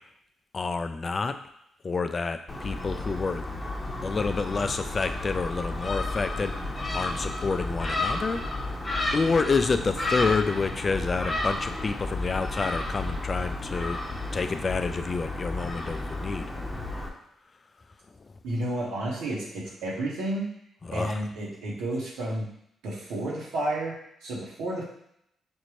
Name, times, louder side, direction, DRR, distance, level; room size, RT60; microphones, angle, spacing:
voice 1, 0.5-1.4 1.8-3.4 4.0-8.4 9.1-14.0 14.3-16.4 20.9-21.2, left 4 dB, 45° left, 8 dB, 0.4 m, -28 dB
Gull seagull, 2.5-17.1, left 2 dB, 25° left, 0.8 m, -32 dB
voice 2, 18.4-20.5 20.9-22.4 22.8-23.9 24.2-24.8, right 1 dB, 85° right, -5 dB, 1.3 m, -31 dB
5.4 x 2.6 x 3.1 m, 0.74 s
supercardioid pair, 50°, 0 cm